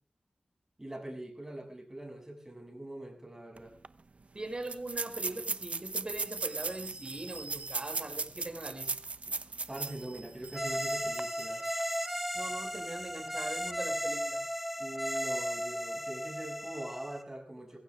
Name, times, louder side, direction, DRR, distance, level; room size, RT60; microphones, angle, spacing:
voice 1, 0.8-3.8 9.7-11.7 14.8-17.8, right 1 dB, 20° right, 2 dB, 7.4 m, -43 dB
sound 1, 3.6-3.7 3.8-3.9 4.6-10.1 10.5-10.6 11.0-11.2, right 3 dB, 55° right, 0.9 m, -37 dB
voice 2, 4.3-9.0 12.3-14.4, right 2 dB, 35° right, 3 dB, 6.5 m, -41 dB
sound 2, 6.3-8.2 9.7-12.6, right 3 dB, 85° right, 5.1 m, -48 dB
sound 3, 10.5-17.2, equal, 5° right, 1.7 m, -35 dB
23.0 x 15.5 x 3.6 m, 0.39 s
wide cardioid pair, 75°, 3 cm